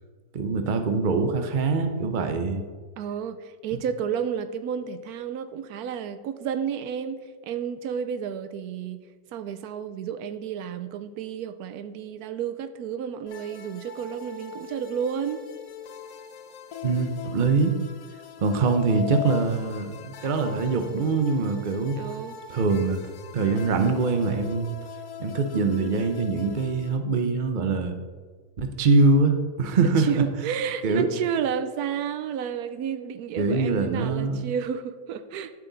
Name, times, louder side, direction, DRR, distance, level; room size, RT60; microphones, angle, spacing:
voice 1, 0.3-2.6 16.8-17.7 18.4-22.0 22.5-23.0 23.3-24.7 25.2-28.0 28.6-30.2 30.8-31.1 33.4-34.4, right 4 dB, 40° right, 0.8 m, -23 dB
voice 2, 3.0-9.0 9.3-15.4 21.9-22.4 29.8-35.5, right 8 dB, 85° right, 1.1 m, -31 dB
sound 1, 13.3-27.0, left 9 dB, 70° left, 1.1 m, -41 dB
10.0 x 7.7 x 4.0 m
omnidirectional pair, 1.6 m